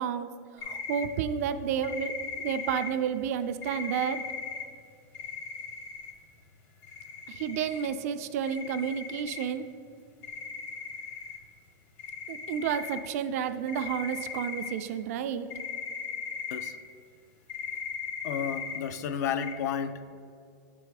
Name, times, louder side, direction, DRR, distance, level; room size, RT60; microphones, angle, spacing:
voice 1, 0.0-2.1 2.4-4.2 7.3-9.7 12.3-15.5, right 8 dB, 55° right, 10 dB, 0.4 m, -31 dB
sound 1, 0.6-1.0 1.8-2.9 3.6-4.6 5.1-6.1 6.8-7.9 8.4-9.4 10.2-11.4 12.0-13.0 13.5-14.7 15.5-16.7 17.5-18.8 19.4-19.5, left 5 dB, 40° left, 0.8 m, -38 dB
voice 2, 18.2-20.1, left 7 dB, 65° left, 11 dB, 0.4 m, -32 dB
8.7 x 3.4 x 4.8 m, 2.4 s
supercardioid pair, 170°, 10 cm